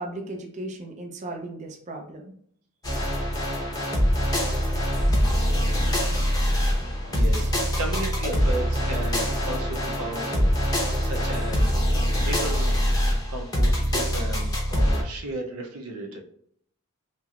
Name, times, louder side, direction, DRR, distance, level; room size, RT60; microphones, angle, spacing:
voice 1, 0.0-2.3 7.3-7.5, right 2 dB, 35° right, 2 dB, 0.5 m, -36 dB
sound 1, 2.8-15.0, equal, 15° left, 0.7 m, -24 dB
voice 2, 7.1-7.5 7.8-10.5 11.0-11.7 12.2-12.7 13.3-16.2, right 2 dB, 80° right, 2 dB, 0.6 m, -34 dB
3.0 x 2.8 x 2.4 m, 0.64 s
head